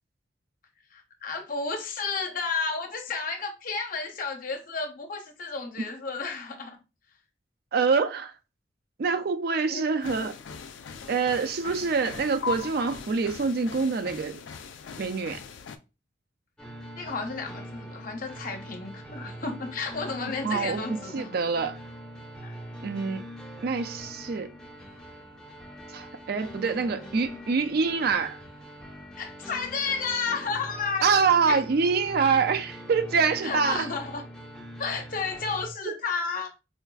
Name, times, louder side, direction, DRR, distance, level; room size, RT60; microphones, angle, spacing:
voice 1, 0.9-6.8 9.7-10.3 17.0-21.4 22.4-22.6 26.8-26.9 29.2-31.6 33.4-34.2 34.8-36.5, left 4 dB, 50° left, 0.7 m, -32 dB
voice 2, 7.7-8.3 9.0-10.4 11.1-14.4 15.0-15.4 20.4-20.8 21.1-21.8 22.8-23.2 23.6-24.5 25.9-28.4 31.0-33.9, right 5 dB, 55° right, 0.4 m, -25 dB
sound 1, 10.0-15.8, left 6 dB, 85° left, 0.4 m, -39 dB
sound 2, 16.6-35.7, equal, 5° left, 0.5 m, -43 dB
4.4 x 2.4 x 2.3 m
head